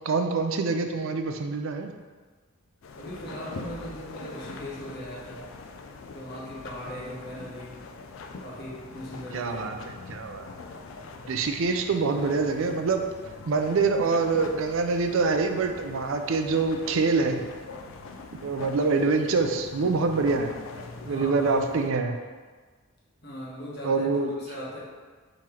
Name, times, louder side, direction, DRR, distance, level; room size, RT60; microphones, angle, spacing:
voice 1, 0.0-1.9 9.3-10.5 11.3-13.0 13.5-17.5 18.4-20.6 21.0-22.2 23.8-24.3, right 4 dB, 75° right, 5 dB, 0.4 m, -25 dB
sound 1, 2.8-21.9, left 3 dB, 75° left, 0.4 m, -43 dB
voice 2, 2.9-5.4 6.1-7.8 8.4-9.7 21.1-21.7 23.2-24.8, equal, 50° left, -5 dB, 1.1 m, -39 dB
3.8 x 3.1 x 4.3 m, 1.5 s
head